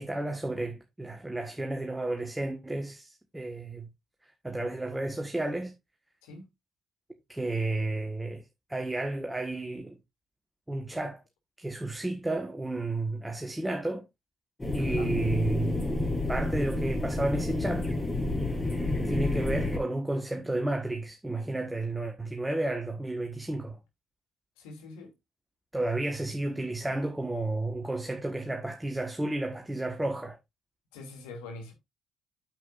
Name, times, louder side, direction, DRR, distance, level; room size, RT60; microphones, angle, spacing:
voice 1, 0.0-3.9 4.4-5.7 7.3-10.0 10.7-11.2 11.6-14.0 14.7-15.8 16.3-17.9 19.0-23.8 25.7-30.4, right 2 dB, 10° right, 1.5 m, -32 dB
sound 1, 14.6-19.8, left 2 dB, 20° left, 3.9 m, -29 dB
voice 2, 14.8-15.1 24.6-25.1 30.9-31.7, left 3 dB, 75° left, 2.7 m, -44 dB
9.3 x 7.8 x 2.6 m
hypercardioid pair, 45°, 0 cm